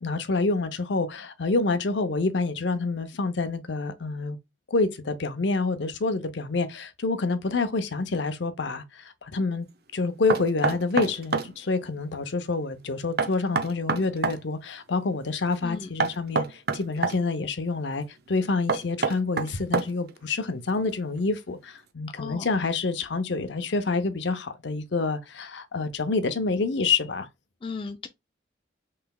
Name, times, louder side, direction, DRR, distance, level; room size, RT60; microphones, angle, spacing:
voice 1, 0.0-4.4 4.7-9.7 9.9-27.3, left 3 dB, 70° left, 0.7 m, -27 dB
Knock, 10.3-11.5 13.2-14.4 16.0-17.2 18.7-20.1, right 4 dB, 55° right, 0.6 m, -26 dB
voice 2, 22.2-22.5 27.6-28.1, left 4 dB, 25° left, 0.3 m, -35 dB
5.7 x 3.3 x 2.3 m
head